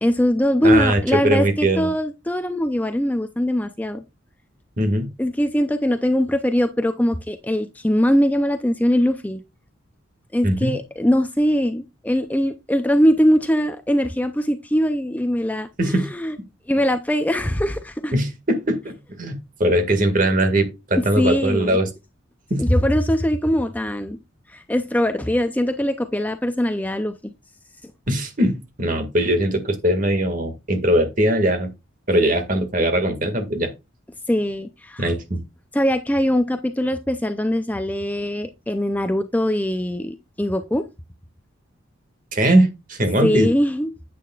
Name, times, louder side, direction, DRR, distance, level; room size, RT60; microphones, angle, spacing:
voice 1, 0.0-4.0 5.2-9.4 10.3-16.4 16.7-18.2 21.0-21.8 22.6-24.2 24.5-27.3 27.8-27.9 34.3-35.1 35.7-40.8 43.2-44.1, equal, 10° left, 0.5 m, -21 dB
voice 2, 0.6-1.9 4.8-5.1 10.4-10.7 15.8-16.1 18.1-21.9 22.5-22.7 28.1-31.7 32.1-33.7 35.0-35.4 42.3-43.5, right 1 dB, 40° right, 2.0 m, -20 dB
9.8 x 8.6 x 2.4 m
head